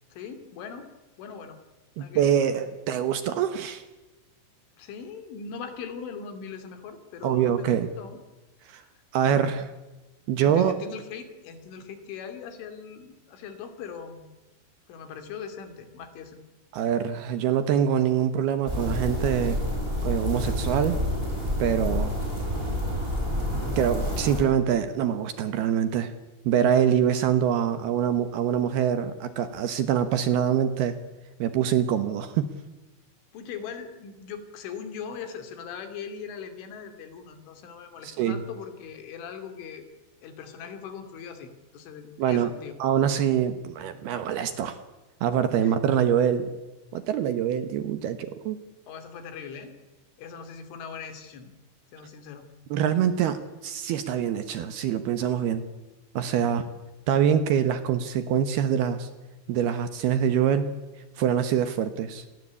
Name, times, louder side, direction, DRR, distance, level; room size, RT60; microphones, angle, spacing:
voice 1, 0.1-0.9 1.2-1.6 2.0-2.4 4.8-8.2 8.8-8.9 9.3-9.6 10.4-14.3 14.9-16.5 33.3-39.9 40.2-42.7 45.6-45.7 48.9-49.7 50.2-51.5 51.9-52.5, left 6 dB, 80° left, 8 dB, 5.1 m, -40 dB
voice 2, 2.0-3.8 7.2-7.9 8.7-8.8 9.1-9.7 10.3-10.8 16.7-19.6 20.0-21.0 21.6-22.1 23.8-26.1 26.4-31.0 31.4-32.5 38.0-38.4 42.2-42.5 42.8-44.8 45.2-46.5 46.9-48.6 52.7-55.6 56.1-56.7 57.1-59.1 59.5-60.7 61.2-62.2, right 9 dB, 70° right, 11 dB, 2.7 m, -24 dB
sound 1, 18.7-24.4, left 1 dB, 10° right, 6.9 m, -28 dB
29.0 x 20.5 x 8.4 m, 1.1 s
omnidirectional pair, 5.5 m